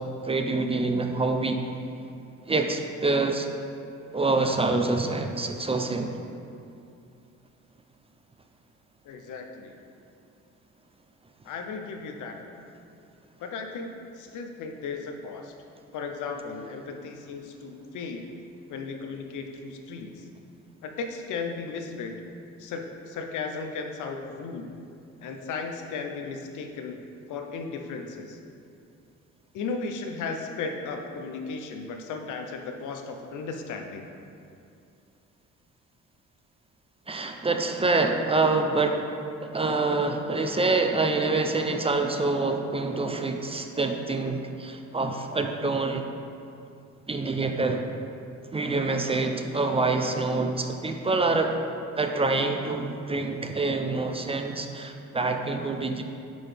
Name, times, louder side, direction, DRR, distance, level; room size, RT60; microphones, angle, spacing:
voice 1, 0.0-1.6 2.5-3.5 4.1-6.2 37.1-39.1 39.4-46.1 47.1-47.9 48.5-51.6 52.0-56.0, right 3 dB, 20° right, 5 dB, 0.4 m, -26 dB
voice 2, 9.0-9.8 11.4-12.6 13.4-15.5 15.9-18.3 18.7-20.2 20.8-22.2 22.6-24.7 25.2-27.0 27.3-28.4 29.5-34.0, left 4 dB, 80° left, 4 dB, 0.7 m, -35 dB
8.7 x 4.0 x 3.4 m, 2.6 s
cardioid pair, 90°, 30 cm